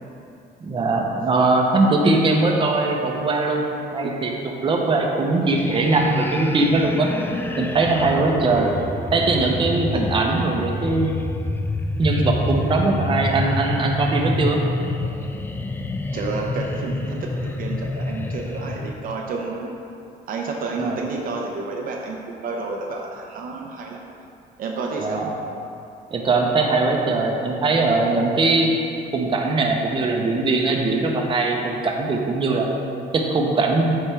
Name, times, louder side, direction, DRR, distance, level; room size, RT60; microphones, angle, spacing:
voice 1, 0.6-7.1 7.6-8.7 9.1-11.2 12.0-14.6 20.8-21.0 25.0-25.3 26.1-28.7 29.1-32.7 33.1-33.9, right 3 dB, 30° right, 0 dB, 0.8 m, -21 dB
sound 1, 5.4-18.9, left 2 dB, 10° left, 0.3 m, -28 dB
voice 2, 9.9-10.8 13.2-13.3 16.1-19.7 20.3-24.0 24.6-25.2, right 3 dB, 55° right, 0 dB, 0.7 m, -30 dB
8.6 x 4.3 x 3.4 m, 2.6 s
cardioid pair, 110°, 17 cm